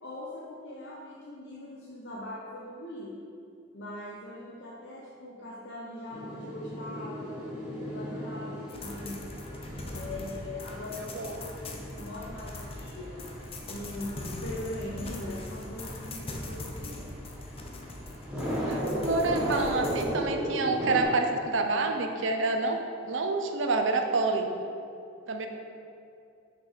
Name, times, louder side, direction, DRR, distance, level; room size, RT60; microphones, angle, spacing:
voice 1, 0.0-3.2 3.7-7.4 7.9-9.3 9.9-13.2 13.6-17.1, left 1 dB, 60° left, -5 dB, 0.8 m, -41 dB
sound 1, 6.1-21.0, equal, 5° right, 1.6 m, -37 dB
sound 2, 8.7-20.1, left 1 dB, 30° left, 0.6 m, -41 dB
voice 2, 18.7-22.8 23.0-24.5 25.3-25.5, right 3 dB, 70° right, 5 dB, 0.6 m, -28 dB
6.3 x 4.5 x 5.0 m, 2.5 s
head